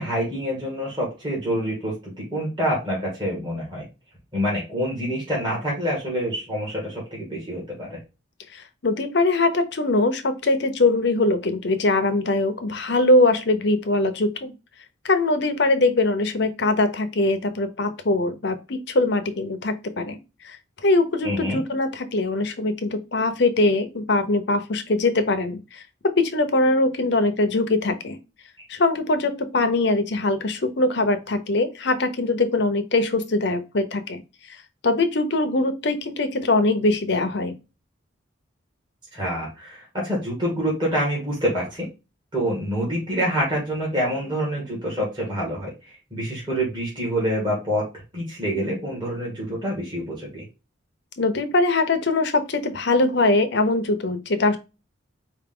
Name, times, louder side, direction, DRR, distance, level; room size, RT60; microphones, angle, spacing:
voice 1, 0.0-3.9 4.3-8.0 21.2-21.6 39.1-41.9 42.3-47.8 48.1-50.4, equal, 25° right, -4 dB, 2.0 m, -26 dB
voice 2, 8.5-14.5 15.0-20.2 20.4-20.6 20.8-25.8 26.2-28.2 28.7-34.2 34.5-34.6 34.8-37.5 51.2-54.6, left 2 dB, 60° left, 8 dB, 0.8 m, -22 dB
4.9 x 2.6 x 3.7 m, 0.27 s
head